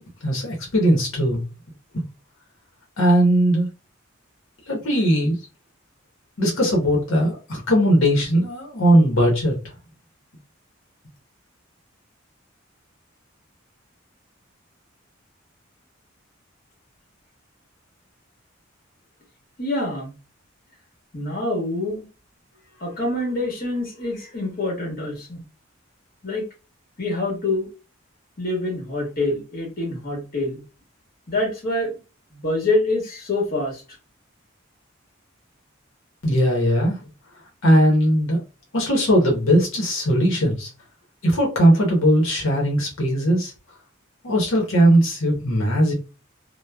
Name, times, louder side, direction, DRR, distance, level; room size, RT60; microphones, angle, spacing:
voice 1, 0.0-1.4 1.9-2.0 3.0-3.7 4.7-5.4 6.4-9.6 36.2-37.0 37.6-38.4 38.7-40.7 41.2-43.5 44.2-45.9, equal, 70° left, 0.8 m, -19 dB
voice 2, 19.6-20.1 21.1-22.1 22.8-25.4 26.2-26.4 27.0-27.7 28.4-30.6 31.3-31.9 32.3-33.8, left 2 dB, 50° left, 1.2 m, -26 dB
2.9 x 2.0 x 2.2 m
head